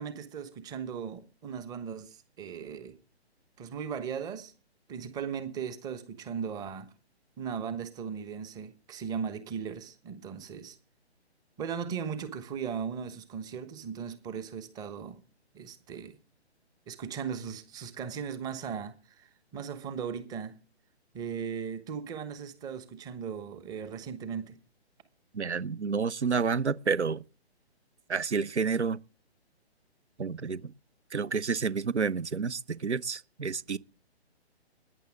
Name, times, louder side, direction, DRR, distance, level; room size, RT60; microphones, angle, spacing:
voice 1, 0.0-3.0 3.6-4.5 4.9-6.9 7.4-10.8 11.6-15.2 15.5-16.2 16.9-20.6 21.1-24.6, right 7 dB, 10° right, 1.1 m, -37 dB
voice 2, 25.3-27.2 28.1-29.0 30.2-30.7 31.1-33.8, right 5 dB, 85° right, 0.9 m, -29 dB
20.5 x 9.9 x 3.6 m
figure-of-eight pair, 140°, 33 cm